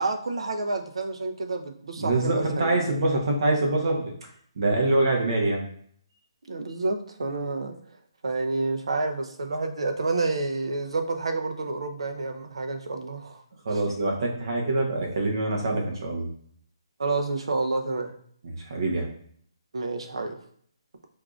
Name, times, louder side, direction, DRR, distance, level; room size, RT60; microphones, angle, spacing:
voice 1, 0.0-2.8 6.5-7.8 8.2-13.4 13.7-13.8 17.0-18.2 19.7-20.4, right 3 dB, 85° right, 6 dB, 0.6 m, -29 dB
voice 2, 2.0-4.1 4.6-5.6 13.6-16.3 18.4-19.0, right 2 dB, 55° right, 0 dB, 0.9 m, -25 dB
4.5 x 2.6 x 2.4 m, 0.62 s
hypercardioid pair, 165°, 3 cm